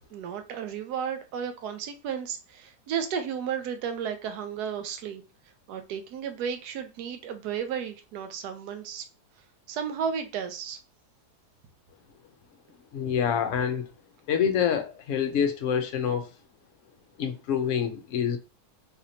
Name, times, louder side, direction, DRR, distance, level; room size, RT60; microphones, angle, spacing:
voice 1, 0.1-5.2 5.7-9.1 9.7-10.8, right 7 dB, 75° right, 1.2 m, -33 dB
voice 2, 12.9-13.8 14.3-16.3 17.2-18.4, left 8 dB, 60° left, 0.8 m, -26 dB
4.1 x 2.9 x 2.7 m
omnidirectional pair, 1.8 m